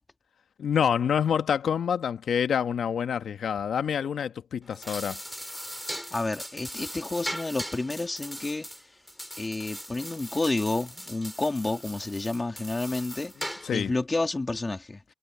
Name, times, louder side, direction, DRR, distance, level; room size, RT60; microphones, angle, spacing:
voice 1, 0.6-5.2 13.6-13.9, left 7 dB, 55° left, 1.5 m, -27 dB
sound 1, 4.6-13.9, equal, ahead, 4.3 m, -39 dB
voice 2, 6.1-8.7 9.4-15.0, left 2 dB, 20° left, 3.2 m, -30 dB
cardioid pair, 90°, 0 cm